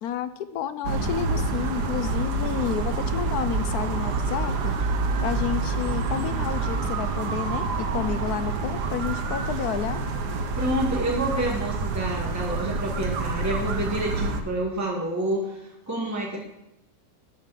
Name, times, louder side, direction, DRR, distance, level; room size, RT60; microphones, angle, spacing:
voice 1, 0.0-4.7 5.2-10.0, left 9 dB, 70° left, 12 dB, 1.0 m, -30 dB
sound 1, 0.8-14.4, right 3 dB, 75° right, 1.5 m, -27 dB
voice 2, 10.6-16.4, right 1 dB, 10° right, -3 dB, 2.0 m, -28 dB
11.5 x 5.3 x 7.4 m, 0.86 s
omnidirectional pair, 1.8 m